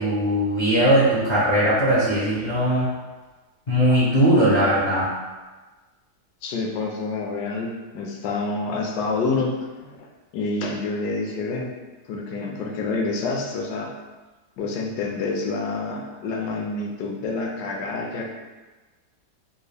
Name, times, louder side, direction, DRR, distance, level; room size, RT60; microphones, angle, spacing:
voice 1, 0.0-2.9 3.7-5.1, right 1 dB, 50° left, -10 dB, 0.5 m, -19 dB
voice 2, 6.4-10.1 10.3-11.7 12.1-13.9 14.6-18.3, left 3 dB, 75° left, 0 dB, 1.1 m, -28 dB
3.5 x 2.4 x 3.3 m, 1.3 s
omnidirectional pair, 1.9 m